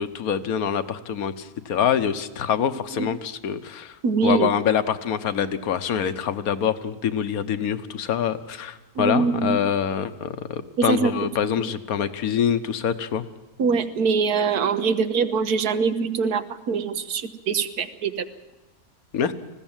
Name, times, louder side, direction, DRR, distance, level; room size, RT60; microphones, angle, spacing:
voice 1, 0.0-4.0 4.2-13.2 19.1-19.3, left 8 dB, 70° left, 12 dB, 1.4 m, -25 dB
voice 2, 4.0-4.5 8.9-9.6 10.8-11.1 11.6-11.7 13.6-18.2, right 5 dB, 85° right, 11 dB, 1.6 m, -23 dB
20.0 x 16.0 x 8.9 m, 1.0 s
omnidirectional pair, 1.6 m